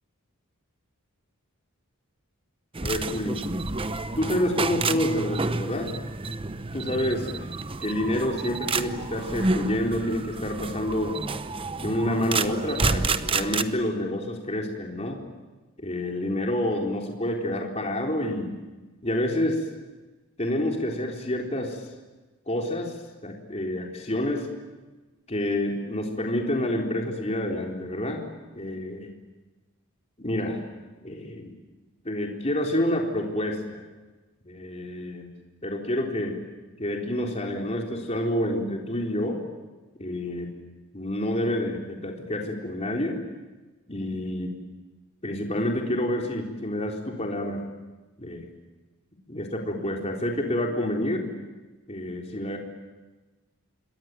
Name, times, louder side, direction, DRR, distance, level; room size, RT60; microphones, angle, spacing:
sound 1, 2.7-13.6, right 3 dB, 25° right, 0.8 m, -29 dB
voice 1, 2.8-3.4 4.2-5.9 6.7-7.3 7.8-11.2 11.8-15.2 15.8-18.5 19.0-19.7 20.4-21.8 22.5-23.0 23.2-24.5 25.3-28.2 28.5-29.1 30.2-30.6 31.0-31.5 32.0-33.8 34.4-35.3 35.6-36.4 36.8-39.4 40.0-40.5 40.9-43.2 43.9-44.6 45.2-47.6 48.2-48.5 49.3-51.3 51.9-52.6, left 1 dB, 30° left, 1 dB, 4.0 m, -28 dB
28.0 x 22.5 x 9.3 m, 1.2 s
head